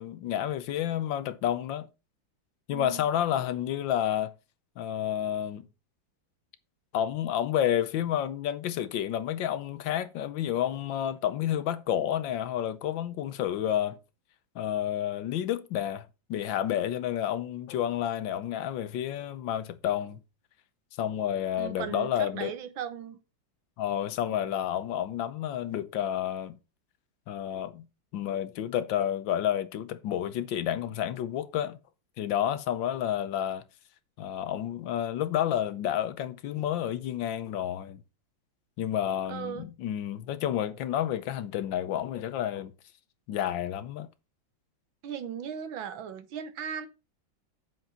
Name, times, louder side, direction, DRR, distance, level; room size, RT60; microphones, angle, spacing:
voice 1, 0.0-1.9 2.7-4.3 4.8-5.7 6.9-14.0 14.5-16.0 16.3-20.2 21.0-22.5 23.8-26.6 27.3-27.9 28.1-31.8 32.2-33.6 34.2-38.0 38.8-42.7 43.3-44.1, left 10 dB, 75° left, 1.5 m, -30 dB
voice 2, 2.7-3.1 21.6-23.2 24.2-24.5 39.3-39.6 45.0-46.9, right 8 dB, 85° right, 1.8 m, -37 dB
8.1 x 7.2 x 4.2 m
omnidirectional pair, 2.1 m